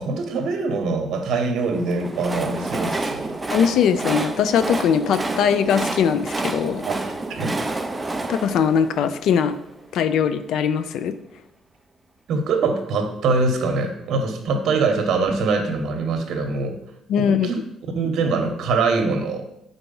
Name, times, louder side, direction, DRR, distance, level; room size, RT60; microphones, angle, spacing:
voice 1, 0.0-3.3 6.9-7.0 7.3-7.6 12.3-16.8 17.2-17.6 17.9-19.5, right 3 dB, 65° right, 5 dB, 0.9 m, -23 dB
Train, 1.7-9.8, right 2 dB, 15° right, 0.4 m, -29 dB
voice 2, 3.5-6.8 8.3-9.5 9.9-11.1 17.1-17.5, left 7 dB, 70° left, 11 dB, 0.4 m, -20 dB
4.5 x 4.0 x 5.4 m, 0.80 s
cardioid pair, 155°, 0 cm